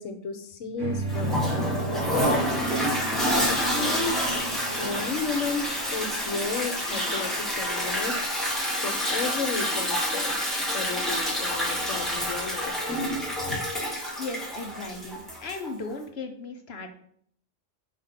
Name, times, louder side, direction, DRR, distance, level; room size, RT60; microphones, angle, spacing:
voice 1, 0.0-2.6 3.4-4.2 4.8-5.7 5.9-8.2 8.8-10.4 10.7-12.7 13.4-13.6, left 4 dB, 85° left, 7 dB, 1.2 m, -33 dB
sound 1, 0.8-5.5, right 4 dB, 75° right, 2.2 m, -35 dB
Toilet flush, 1.1-15.7, equal, ahead, 2.0 m, -28 dB
sound 2, 2.2-8.5, left 2 dB, 20° left, 0.7 m, -40 dB
voice 2, 14.2-16.9, left 3 dB, 60° left, 6 dB, 1.1 m, -36 dB
5.2 x 5.1 x 5.8 m, 0.65 s
omnidirectional pair, 1.3 m